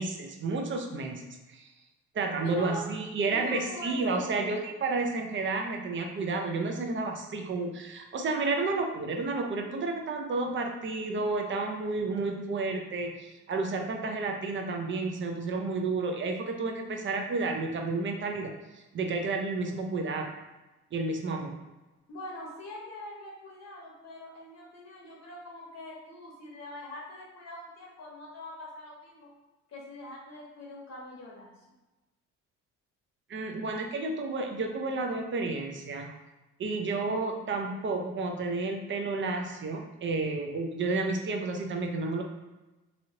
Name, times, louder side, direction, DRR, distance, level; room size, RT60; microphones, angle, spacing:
voice 1, 0.0-1.7 2.1-20.3 20.9-21.6 33.3-36.1 36.6-42.2, right 3 dB, 40° right, 3 dB, 0.6 m, -31 dB
voice 2, 3.3-4.6 22.1-29.3 29.7-31.5, left 1 dB, 60° left, -3 dB, 1.0 m, -43 dB
3.0 x 2.8 x 2.8 m, 1.1 s
cardioid pair, 90°, 30 cm